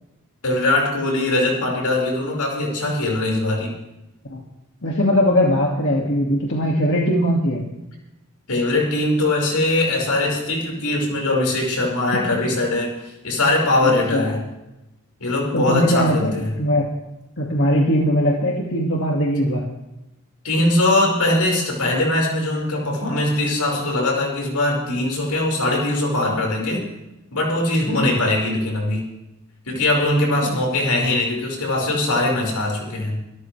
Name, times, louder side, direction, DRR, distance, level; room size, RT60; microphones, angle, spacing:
voice 1, 0.4-3.8 8.5-12.9 13.2-14.4 15.2-16.5 20.4-26.9 27.3-29.0 29.7-33.2, left 2 dB, 85° left, -1 dB, 5.1 m, -21 dB
voice 2, 4.8-7.6 12.1-12.2 13.8-14.4 15.5-16.3 16.6-16.9 17.4-19.7 27.9-28.2 30.4-30.6, equal, 55° left, -1 dB, 2.1 m, -20 dB
25.5 x 13.0 x 3.3 m, 0.94 s
head